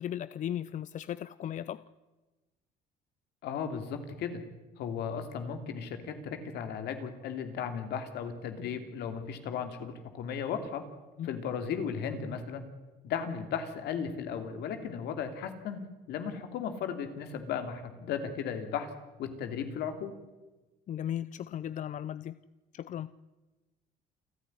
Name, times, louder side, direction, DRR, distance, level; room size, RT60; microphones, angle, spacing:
voice 1, 0.0-1.8 11.2-11.4 20.9-22.4 22.7-23.1, left 10 dB, 50° left, 16 dB, 0.6 m, -36 dB
voice 2, 3.4-4.4 4.8-10.8 11.2-12.6 13.0-18.9 19.2-20.1, left 7 dB, 75° left, 7 dB, 2.9 m, -36 dB
28.5 x 10.5 x 9.9 m, 1.2 s
cardioid pair, 110°, 17 cm